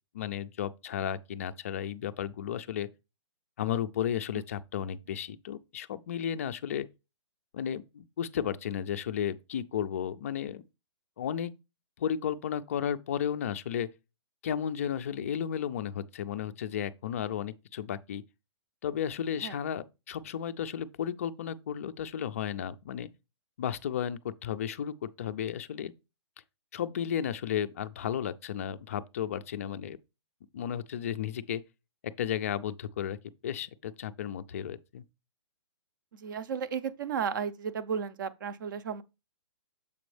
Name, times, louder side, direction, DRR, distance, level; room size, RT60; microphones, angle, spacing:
voice 1, 0.1-2.9 3.6-6.9 7.5-10.6 11.2-11.5 12.0-13.9 14.4-18.2 18.8-23.1 23.6-25.9 26.7-30.0 30.5-31.6 32.2-33.2 33.4-35.0, left 9 dB, 30° left, 0.3 m, -33 dB
voice 2, 36.1-39.0, right 7 dB, 40° right, 0.6 m, -34 dB
7.0 x 5.1 x 3.2 m
hypercardioid pair, 165°, 16 cm